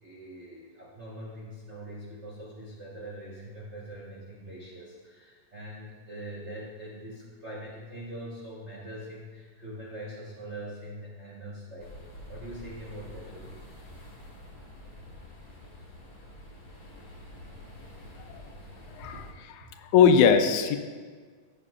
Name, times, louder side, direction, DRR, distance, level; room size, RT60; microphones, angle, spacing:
voice 1, 0.0-11.9 12.3-13.7 19.1-19.3, right 1 dB, 75° right, -6 dB, 0.6 m, -42 dB
sound 1, 11.8-19.3, left 1 dB, 35° left, 2.1 m, -47 dB
voice 2, 19.0-19.3 19.8-20.8, left 7 dB, 80° left, 7 dB, 2.0 m, -20 dB
15.0 x 7.3 x 2.4 m, 1.5 s
omnidirectional pair, 3.4 m